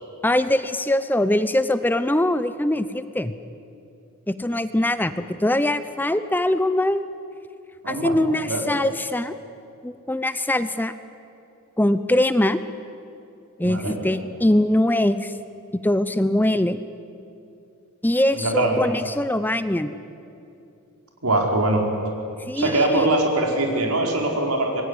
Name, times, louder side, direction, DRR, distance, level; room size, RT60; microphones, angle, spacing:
voice 1, 0.2-3.3 4.3-7.0 7.9-9.3 9.8-10.9 11.8-12.6 13.6-15.3 15.8-16.8 18.0-19.9 22.5-23.1, left 1 dB, 10° left, 12 dB, 0.7 m, -22 dB
voice 2, 7.8-8.1 8.5-8.6 13.6-14.0 18.3-18.9 21.2-21.8 22.6-24.8, right 2 dB, 80° right, 1 dB, 4.6 m, -22 dB
26.5 x 22.0 x 9.9 m, 2.6 s
head